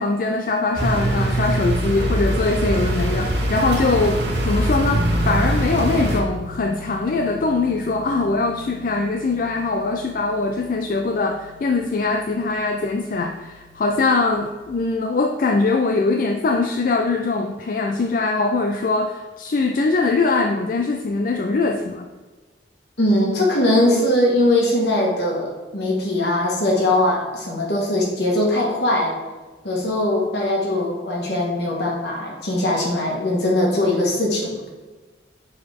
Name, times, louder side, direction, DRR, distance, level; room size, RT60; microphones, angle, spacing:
voice 1, 0.0-22.1, left 3 dB, 50° left, 5 dB, 0.3 m, -22 dB
sound 1, 0.7-6.2, right 1 dB, 75° right, 1.1 m, -22 dB
sound 2, 4.9-14.7, right 1 dB, 45° right, 0.6 m, -34 dB
voice 2, 23.0-29.2 29.6-34.6, left 1 dB, 70° left, -2 dB, 1.6 m, -20 dB
6.1 x 4.8 x 3.6 m, 1.3 s
head